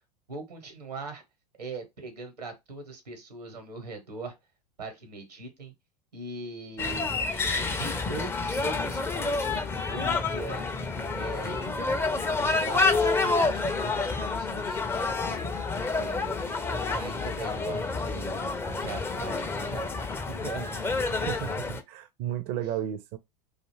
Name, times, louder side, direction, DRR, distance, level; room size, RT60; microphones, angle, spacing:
voice 1, 0.3-1.2 1.6-4.3 4.8-5.7 6.1-7.1 7.7-9.6 9.9-10.7 11.1-12.0 12.3-15.4 15.8-18.5 18.8-20.9, right 3 dB, 90° right, 1.0 m, -40 dB
sound 1, 6.8-21.8, left 3 dB, 10° left, 0.4 m, -29 dB
voice 2, 21.1-23.2, right 11 dB, 45° right, 0.4 m, -33 dB
2.5 x 2.4 x 3.1 m
hypercardioid pair, 90°, 20 cm